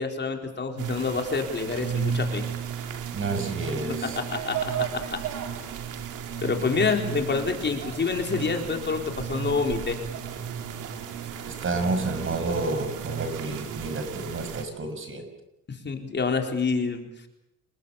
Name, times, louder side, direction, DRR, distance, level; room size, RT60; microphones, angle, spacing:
voice 1, 0.0-2.5 4.0-5.2 6.4-10.0 15.7-17.1, left 4 dB, 35° left, 3 dB, 4.1 m, -27 dB
sound 1, 0.8-14.7, right 7 dB, 90° right, 3.1 m, -34 dB
voice 2, 3.1-4.2 11.5-15.3, right 3 dB, 45° right, 8 dB, 6.0 m, -30 dB
30.0 x 21.5 x 7.1 m, 0.88 s
cardioid pair, 90°, 30 cm